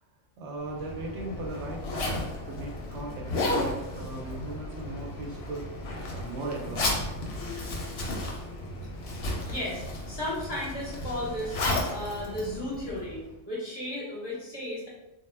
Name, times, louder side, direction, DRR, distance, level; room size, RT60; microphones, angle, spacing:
voice 1, 0.4-5.7 6.1-7.0, right 2 dB, 70° right, -1 dB, 0.8 m, -38 dB
Zipper (clothing), 0.6-13.3, left 2 dB, 65° left, 0.7 m, -33 dB
voice 2, 9.4-11.6 11.9-13.2 13.5-14.9, left 1 dB, 25° left, -7 dB, 0.6 m, -34 dB
2.1 x 2.1 x 3.2 m, 0.95 s
omnidirectional pair, 1.3 m